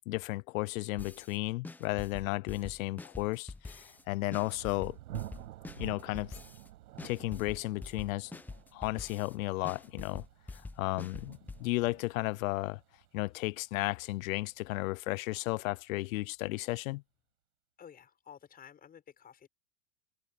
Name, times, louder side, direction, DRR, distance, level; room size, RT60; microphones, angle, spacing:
voice 1, 0.1-5.0 5.8-6.4 7.0-8.3 8.7-10.2 10.5-12.8 13.1-17.0, left 20 dB, 65° left, 0.5 m, -34 dB
sound 1, 1.0-1.4 1.6-4.0 4.3-6.7 7.0-9.3 9.6-11.6, left 3 dB, 5° left, 0.7 m, -45 dB
Thunder, 3.8-15.3, right 14 dB, 75° right, 5.3 m, -50 dB
voice 2, 17.8-19.5, left 8 dB, 20° left, 6.9 m, -53 dB
open air
supercardioid pair, 150°, 45 cm